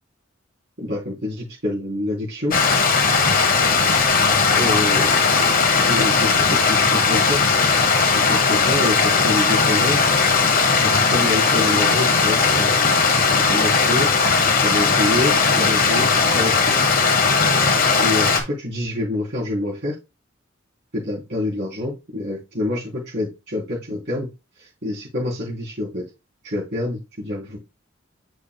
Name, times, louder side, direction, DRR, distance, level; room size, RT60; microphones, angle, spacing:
voice 1, 0.8-2.5 4.5-7.4 8.1-10.0 10.8-13.0 13.3-14.1 14.6-16.8 18.0-19.9 20.9-24.3 24.6-26.0 26.4-27.6, left 2 dB, 60° right, -5 dB, 3.2 m, -27 dB
Stream, 2.5-18.4, left 4 dB, 45° left, 1.3 m, -18 dB
7.4 x 6.3 x 2.2 m, 0.25 s
head